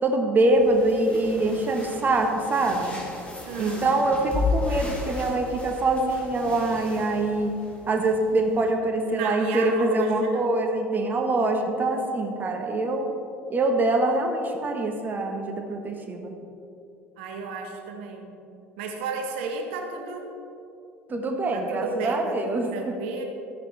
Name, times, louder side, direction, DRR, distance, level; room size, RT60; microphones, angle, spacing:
voice 1, 0.0-3.0 3.6-7.5 7.9-13.1 13.5-16.3 21.1-22.9, right 2 dB, 25° right, 3 dB, 1.2 m, -24 dB
sound 1, 0.5-8.7, left 4 dB, 15° left, 2.4 m, -34 dB
voice 2, 3.5-3.9 9.1-10.5 17.2-18.3 18.8-20.3 21.5-23.2, right 3 dB, 60° right, 3 dB, 1.2 m, -32 dB
13.0 x 10.5 x 3.3 m, 2.7 s
figure-of-eight pair, 65°, 7 cm